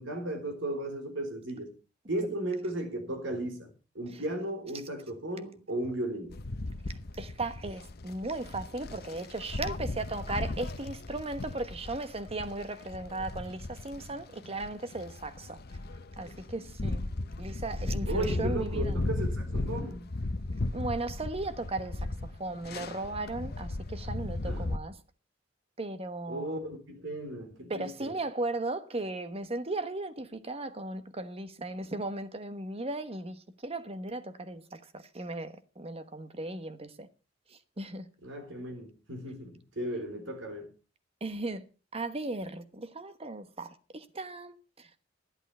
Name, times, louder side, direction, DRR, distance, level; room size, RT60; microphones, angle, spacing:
voice 1, 0.0-1.8 2.1-6.4 18.1-20.1 24.5-24.7 26.3-28.2 38.2-40.7, right 1 dB, 85° right, 3.7 m, -35 dB
sound 1, 6.3-24.8, left 2 dB, 55° left, 0.9 m, -36 dB
voice 2, 6.9-15.6 16.2-17.0 17.4-19.0 20.7-25.0 25.8-26.6 27.7-37.1 37.5-38.1 41.2-41.6 41.9-44.9, right 2 dB, 30° right, 1.2 m, -37 dB
12.0 x 11.0 x 5.5 m
head